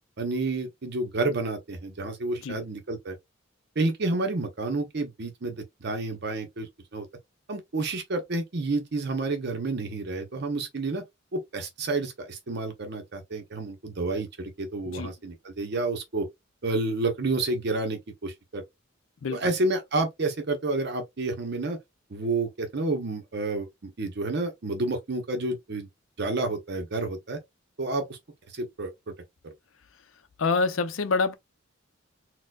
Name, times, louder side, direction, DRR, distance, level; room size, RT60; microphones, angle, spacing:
voice 1, 0.2-3.2 3.8-7.1 7.5-11.0 11.3-16.3 16.6-18.6 19.3-21.8 22.1-25.9 26.2-27.4 27.8-28.2 28.5-29.1 29.4-29.5, right 2 dB, 55° right, 0.7 m, -30 dB
voice 2, 19.2-19.5 30.4-31.4, left 4 dB, 75° left, 0.5 m, -26 dB
4.2 x 2.1 x 2.3 m
head